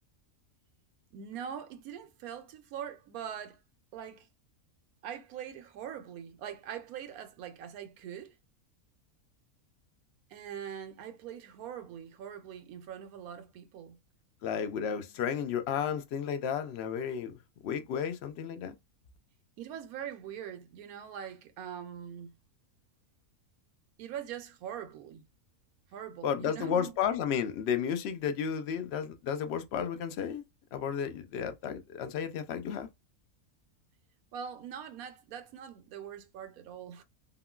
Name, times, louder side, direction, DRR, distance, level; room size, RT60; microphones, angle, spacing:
voice 1, 1.1-3.6 3.9-4.3 5.0-8.3 10.3-14.0 19.6-22.3 24.0-25.2 25.9-26.9 34.3-37.0, right 9 dB, 85° right, 1.1 m, -42 dB
voice 2, 14.4-18.8 26.2-30.4 30.7-32.9, left 8 dB, 65° left, 0.7 m, -33 dB
3.6 x 2.2 x 2.2 m
omnidirectional pair, 1.5 m